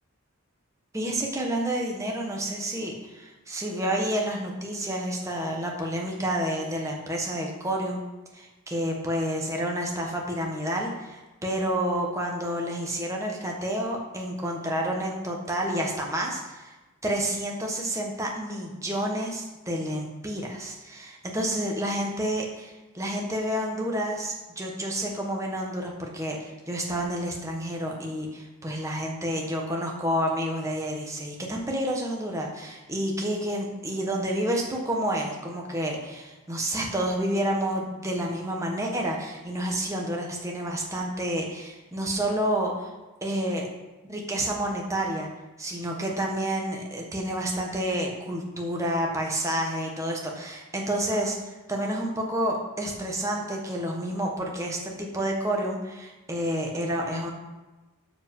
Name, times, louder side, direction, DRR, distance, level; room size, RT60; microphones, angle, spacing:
voice 1, 0.9-8.0 8.3-16.8 17.0-42.9 43.2-43.7 44.0-45.3 45.6-57.3, right 1 dB, 15° right, 0 dB, 1.5 m, -29 dB
12.5 x 5.0 x 5.5 m, 1.1 s
head